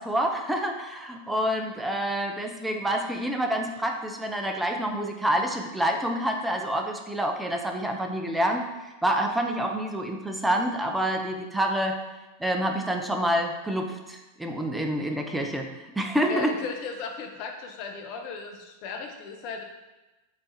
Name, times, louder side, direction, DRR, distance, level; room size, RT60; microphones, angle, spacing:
voice 1, 0.0-8.6 9.0-12.0 12.4-15.7 16.0-16.5, right 1 dB, 5° right, 3 dB, 0.5 m, -27 dB
voice 2, 16.3-19.6, left 5 dB, 45° left, 3 dB, 0.5 m, -36 dB
3.3 x 3.2 x 3.8 m, 1.1 s
figure-of-eight pair, 90°, 0 cm